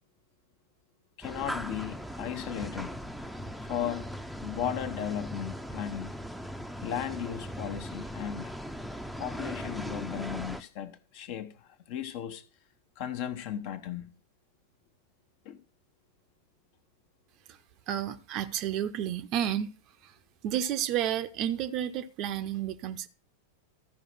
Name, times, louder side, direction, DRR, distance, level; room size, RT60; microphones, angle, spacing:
voice 1, 1.2-3.0 3.6-4.1 4.4-6.2 6.8-8.6 9.2-12.4 13.0-14.1 15.4-15.6, left 10 dB, 45° left, 1.1 m, -36 dB
sound 1, 1.2-10.6, equal, ahead, 0.7 m, -39 dB
voice 2, 17.9-19.7 20.0-20.1 20.4-23.1, right 10 dB, 40° right, 0.8 m, -31 dB
13.5 x 5.0 x 6.3 m
figure-of-eight pair, 90°, 0 cm